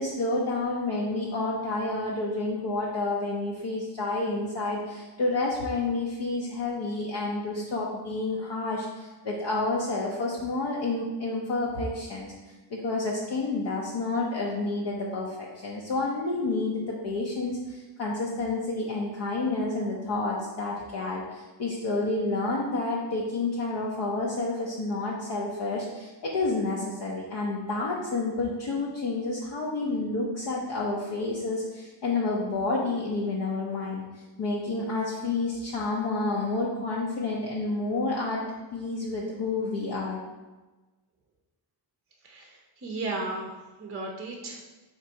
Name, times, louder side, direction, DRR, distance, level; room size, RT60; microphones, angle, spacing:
voice 1, 0.0-38.4 38.7-40.2, left 2 dB, 60° left, -4 dB, 0.7 m, -29 dB
voice 2, 42.2-44.6, right 2 dB, 30° right, 0 dB, 0.5 m, -35 dB
3.9 x 2.9 x 4.5 m, 1.2 s
wide cardioid pair, 135°, 45 cm